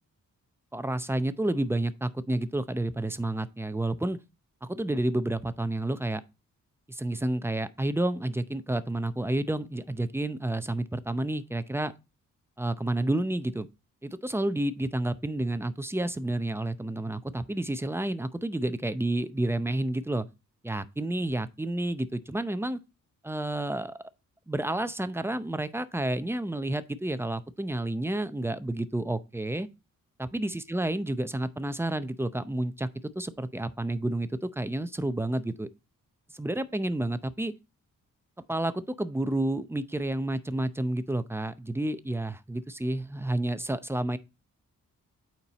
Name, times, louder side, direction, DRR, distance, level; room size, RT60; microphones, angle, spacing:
voice 1, 0.7-4.2 4.6-6.2 6.9-11.9 12.6-13.7 14.0-20.3 20.6-22.8 23.2-24.0 24.5-29.7 30.3-32.9 33.2-35.7 36.3-37.5 38.5-44.2, right 1 dB, 5° right, 0.6 m, -30 dB
8.7 x 4.6 x 4.0 m
cardioid pair, 100°, 32 cm